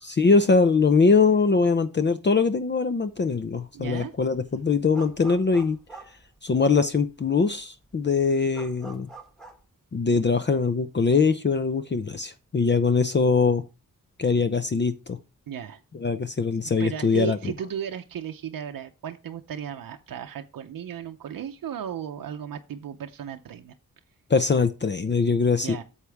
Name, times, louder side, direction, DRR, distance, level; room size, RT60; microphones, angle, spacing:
voice 1, 0.0-5.8 6.4-9.1 9.9-13.6 14.2-15.2 15.9-17.4 24.3-25.8, left 4 dB, 35° left, 0.6 m, -22 dB
sound 1, 3.1-3.5 3.8-6.9 7.4-7.5 7.7-9.6, right 3 dB, ahead, 1.6 m, -45 dB
voice 2, 3.7-4.1 15.5-15.8 16.8-23.7 25.6-25.8, right 8 dB, 90° right, 0.7 m, -35 dB
8.3 x 7.2 x 3.4 m
wide cardioid pair, 90°, 33 cm